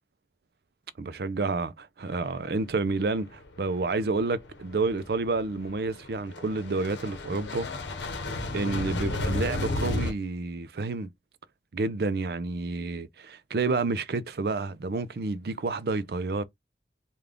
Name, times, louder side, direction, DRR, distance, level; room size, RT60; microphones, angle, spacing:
voice 1, 1.0-7.7 8.5-11.1 11.7-16.4, right 3 dB, 60° right, 0.4 m, -29 dB
sound 1, 2.2-2.3 2.8-3.1 3.4-10.1, left 2 dB, 85° left, 0.8 m, -33 dB
3.4 x 2.3 x 3.6 m
head